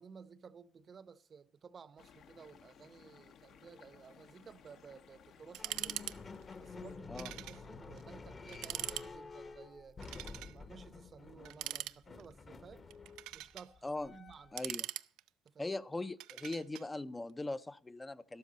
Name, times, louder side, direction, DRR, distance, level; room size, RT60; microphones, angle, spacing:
voice 1, 0.0-6.0 6.6-10.0 10.4-12.9 13.3-14.6 15.4-15.8, right 6 dB, 35° right, 0.8 m, -55 dB
sound 1, 2.0-7.0, left 7 dB, 55° left, 0.9 m, -60 dB
sound 2, 5.5-6.2 6.4-6.5 7.2-7.6 8.0-8.1 8.5-9.1 10.0-10.5 11.4-12.3 12.9-13.7 14.3-15.5 16.2-16.9, right 15 dB, 80° right, 0.4 m, -42 dB
sound 3, 5.6-14.7, left 4 dB, 30° left, 0.9 m, -50 dB
voice 2, 14.5-14.9 15.6-18.4, left 2 dB, 15° left, 0.5 m, -40 dB
12.5 x 12.5 x 4.0 m
cardioid pair, 125°, 0 cm